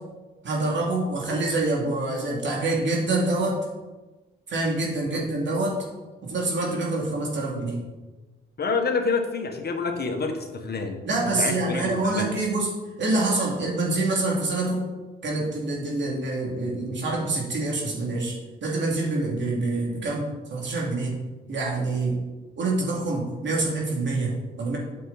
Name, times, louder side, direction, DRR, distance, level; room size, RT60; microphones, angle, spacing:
voice 1, 0.4-3.6 4.5-5.9 6.2-7.8 11.0-12.7 13.0-14.9 15.2-21.1 21.5-22.2 22.6-24.8, right 2 dB, 60° right, -2 dB, 2.8 m, -26 dB
voice 2, 8.6-11.0 11.2-12.3, left 4 dB, 50° left, 4 dB, 1.4 m, -28 dB
9.1 x 6.7 x 4.2 m, 1.2 s
cardioid pair, 70°, 21 cm